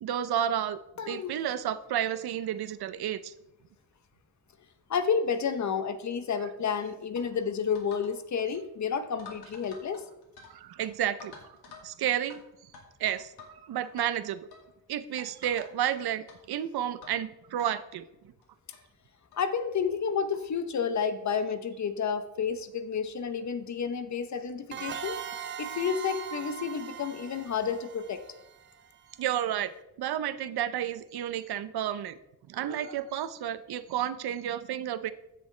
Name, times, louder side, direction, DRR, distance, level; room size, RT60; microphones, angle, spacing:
voice 1, 0.0-0.8 1.1-3.3 10.5-11.3 11.8-12.4 13.0-14.4 14.9-18.0 29.2-29.7 30.0-32.2 32.5-35.1, right 10 dB, 75° right, 14 dB, 0.7 m, -31 dB
voice 2, 1.0-1.4 4.9-10.0 19.4-25.2 25.6-28.2, left 6 dB, 45° left, 10 dB, 0.8 m, -30 dB
sound 1, 7.1-7.3 7.7-8.1 8.4-8.6 9.2-10.5 10.8-10.9 11.2-11.9 12.3-12.4 12.7-13.6 13.8-14.1 14.5-14.7 15.2-15.9 16.3-16.4 17.0-17.2 17.6-17.7 18.4-18.5 18.7-18.8 19.3-19.5 20.3-20.4 21.3-21.5, left 5 dB, 90° left, 2.5 m, -49 dB
sound 2, 24.7-29.2, right 9 dB, 30° right, 0.4 m, -40 dB
15.0 x 6.7 x 3.2 m, 0.90 s
cardioid pair, 130°, 38 cm